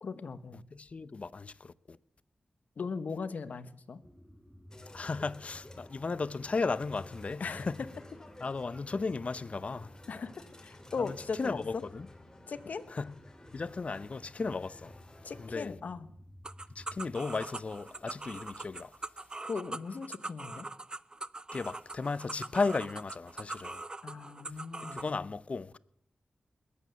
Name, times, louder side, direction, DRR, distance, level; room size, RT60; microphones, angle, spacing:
voice 1, 0.0-0.6 2.8-4.0 7.4-7.9 10.1-10.3 10.6-11.8 12.5-12.8 15.2-16.1 19.4-20.7 24.0-25.1, left 5 dB, 70° left, 1.2 m, -38 dB
voice 2, 0.7-2.0 4.9-7.8 8.4-9.9 11.0-12.1 12.9-13.1 13.5-14.9 15.4-15.8 16.8-18.9 21.5-23.8 24.9-25.8, left 4 dB, 50° left, 0.7 m, -35 dB
sound 1, 4.0-17.2, equal, 10° right, 5.7 m, -54 dB
sound 2, 4.7-15.5, left 2 dB, 25° left, 2.7 m, -55 dB
sound 3, 16.4-25.1, right 2 dB, 30° right, 0.6 m, -42 dB
21.0 x 8.6 x 6.9 m
cardioid pair, 45°, 3 cm